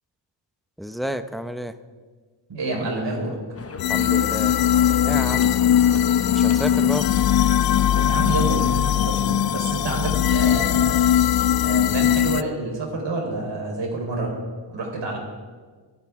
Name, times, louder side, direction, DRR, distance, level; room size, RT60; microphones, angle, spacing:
voice 1, 0.8-1.7 3.9-4.5 5.0-5.5 6.3-7.1, equal, ahead, 10 dB, 0.7 m, -30 dB
voice 2, 2.5-3.3 8.0-11.1 11.6-14.3 14.7-15.2, right 2 dB, 65° right, 0 dB, 4.5 m, -28 dB
sound 1, 3.5-9.6, left 4 dB, 30° left, 1.0 m, -37 dB
sound 2, 3.8-12.4, left 10 dB, 55° left, 0.5 m, -20 dB
24.0 x 10.0 x 3.7 m, 1.5 s
cardioid pair, 90°, 47 cm